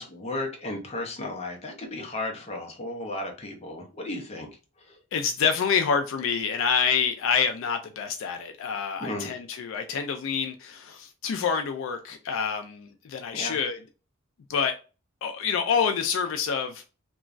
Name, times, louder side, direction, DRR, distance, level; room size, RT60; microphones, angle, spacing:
voice 1, 0.0-4.5 4.9-5.0 9.0-9.3 13.3-13.6, left 2 dB, 30° left, 0.6 m, -34 dB
voice 2, 5.1-13.8 14.5-14.7 15.2-16.8, left 6 dB, 65° left, 0.3 m, -27 dB
2.9 x 2.2 x 2.4 m
head